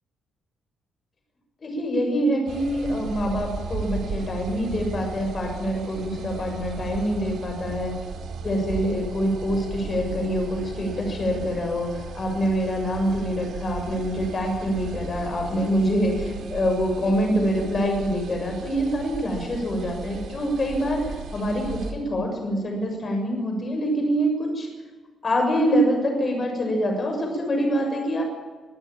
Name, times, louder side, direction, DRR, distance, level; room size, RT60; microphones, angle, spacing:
voice 1, 1.6-7.9 8.4-24.7 25.2-28.2, equal, 30° left, 3 dB, 6.8 m, -25 dB
sound 1, 2.5-21.9, right 4 dB, 70° right, 3.9 m, -36 dB
24.5 x 15.5 x 8.9 m, 1.3 s
cardioid pair, 160°, 0 cm